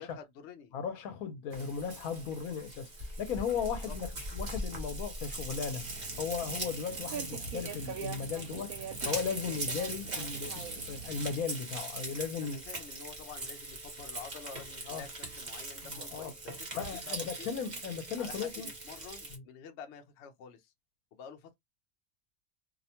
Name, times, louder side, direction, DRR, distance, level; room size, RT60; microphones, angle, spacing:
voice 1, 0.0-0.7 3.9-4.0 12.4-17.5 18.2-20.7 21.1-21.5, left 7 dB, 60° left, 0.7 m, -49 dB
voice 2, 0.7-2.9 3.2-5.9 6.2-8.8 9.0-12.6 14.9-15.0 15.9-16.3 16.7-18.7 19.3-19.4, left 6 dB, 75° left, 1.0 m, -36 dB
Frying (food), 1.5-19.4, right 2 dB, 35° right, 0.9 m, -41 dB
sound 1, 5.7-11.4, right 5 dB, 75° right, 1.1 m, -43 dB
2.7 x 2.1 x 2.8 m
omnidirectional pair, 1.6 m